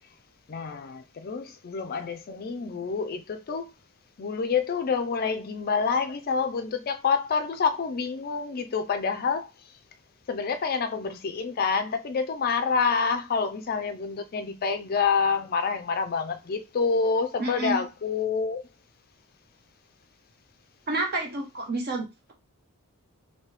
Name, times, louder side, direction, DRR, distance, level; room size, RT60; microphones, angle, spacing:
voice 1, 0.5-3.7 4.2-9.5 10.3-18.6, left 5 dB, 40° left, 0.4 m, -27 dB
voice 2, 17.4-17.8 20.9-22.3, right 2 dB, 45° right, 0.9 m, -29 dB
3.0 x 2.7 x 3.2 m
head